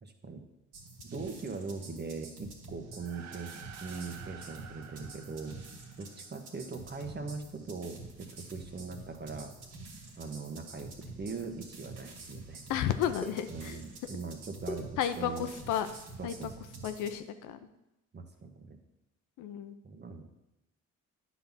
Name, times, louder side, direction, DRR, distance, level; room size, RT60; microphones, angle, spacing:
voice 1, 0.0-0.4 1.0-3.5 3.8-5.6 6.0-9.5 10.2-10.9 11.2-12.6 13.5-15.5 16.2-16.6 18.1-18.8 19.8-20.3, right 4 dB, 35° right, 5 dB, 1.3 m, -41 dB
sound 1, 0.7-17.2, right 3 dB, 85° right, 2.4 m, -48 dB
sound 2, 2.9-6.6, right 7 dB, 65° right, 0.8 m, -51 dB
sound 3, 7.4-16.0, left 2 dB, 5° left, 1.9 m, -49 dB
voice 2, 12.7-13.8 15.0-15.9 16.2-16.5 16.8-17.6 19.4-19.7, left 9 dB, 90° left, 9 dB, 0.7 m, -32 dB
9.9 x 4.1 x 7.2 m, 0.93 s
cardioid pair, 90°, 30 cm